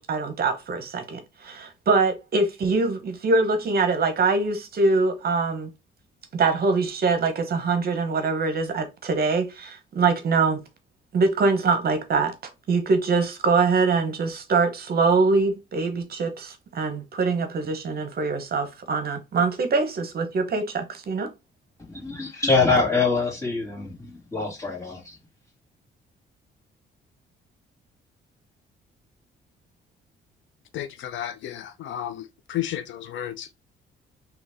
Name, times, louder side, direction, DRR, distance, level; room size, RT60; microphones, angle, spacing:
voice 1, 0.0-5.7 6.3-10.6 11.1-12.3 12.7-21.3, right 4 dB, 50° right, 0.9 m, -23 dB
voice 2, 21.8-25.2, left 3 dB, 15° left, 2.2 m, -24 dB
voice 3, 30.7-33.5, left 11 dB, 70° left, 0.5 m, -33 dB
3.9 x 2.9 x 3.4 m
cardioid pair, 90°, 20 cm